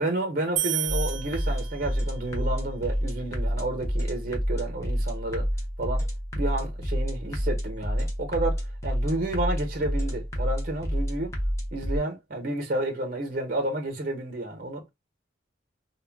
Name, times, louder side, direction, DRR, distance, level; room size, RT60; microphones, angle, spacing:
voice 1, 0.0-5.5 5.8-6.1 6.3-11.3 11.7-14.8, right 2 dB, 50° right, 0.7 m, -31 dB
sound 1, 0.6-2.2, right 12 dB, 85° right, 0.5 m, -31 dB
sound 2, 0.9-12.0, equal, 15° left, 0.6 m, -29 dB
2.2 x 2.1 x 3.3 m
head